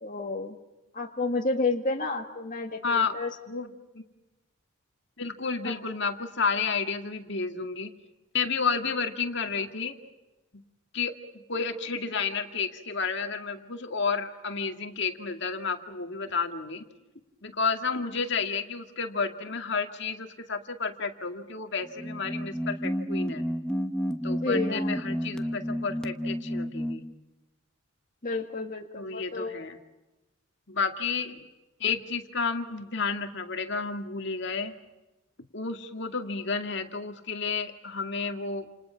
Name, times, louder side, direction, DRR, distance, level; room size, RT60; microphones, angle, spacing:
voice 1, 0.0-0.6 0.9-3.3 5.6-5.8 24.3-24.9 28.2-29.6, left 3 dB, 40° left, 1 dB, 1.8 m, -31 dB
voice 2, 2.8-3.2 3.5-4.0 5.2-7.9 8.3-10.0 10.5-10.6 10.9-16.8 17.4-23.4 24.2-27.0 28.9-29.8 30.7-31.4 31.8-34.7 35.5-38.7, left 5 dB, 60° left, 5 dB, 2.2 m, -31 dB
sound 1, 21.8-27.1, equal, 5° left, 1.1 m, -31 dB
29.5 x 28.5 x 5.9 m, 1.0 s
head